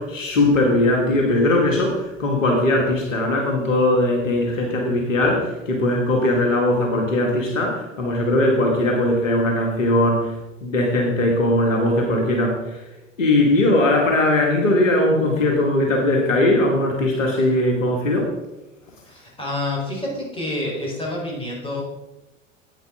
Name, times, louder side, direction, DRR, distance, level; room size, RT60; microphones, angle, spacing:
voice 1, 0.0-10.3 10.6-12.8 13.2-18.3, left 1 dB, 75° left, 0 dB, 2.1 m, -19 dB
voice 2, 19.0-21.8, left 1 dB, 15° left, -3 dB, 4.1 m, -28 dB
10.5 x 8.9 x 3.7 m, 1.0 s
figure-of-eight pair, 80°, 39 cm